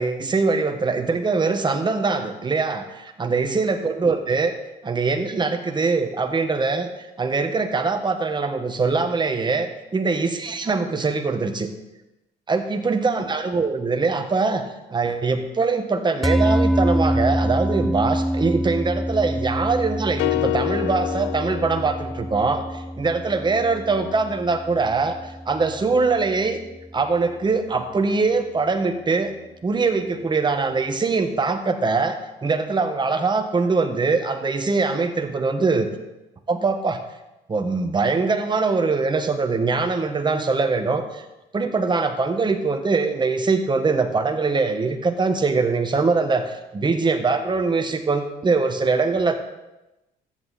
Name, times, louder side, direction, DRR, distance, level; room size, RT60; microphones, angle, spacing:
voice 1, 0.0-4.5 4.8-11.7 12.5-14.6 14.9-26.6 26.9-29.3 29.6-35.9 36.5-37.0 37.5-41.2 41.5-49.4, right 4 dB, 25° right, 6 dB, 1.4 m, -22 dB
sound 1, 16.2-26.7, equal, ahead, 0.4 m, -26 dB
sound 2, 20.2-22.5, left 19 dB, 80° left, 0.5 m, -27 dB
13.5 x 8.2 x 4.2 m, 0.99 s
supercardioid pair, 75°, 18 cm